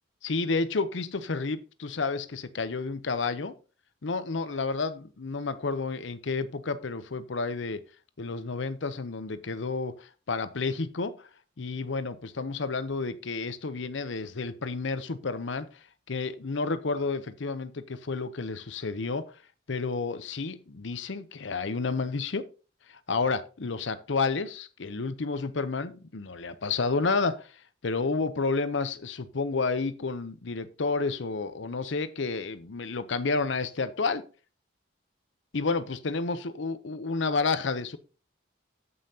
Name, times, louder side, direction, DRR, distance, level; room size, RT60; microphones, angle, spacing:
voice 1, 0.2-3.5 4.0-7.8 8.2-11.3 11.6-19.4 19.7-22.5 22.9-34.2 35.5-38.0, left 4 dB, 75° left, 0.7 m, -30 dB
14.0 x 5.6 x 2.8 m
head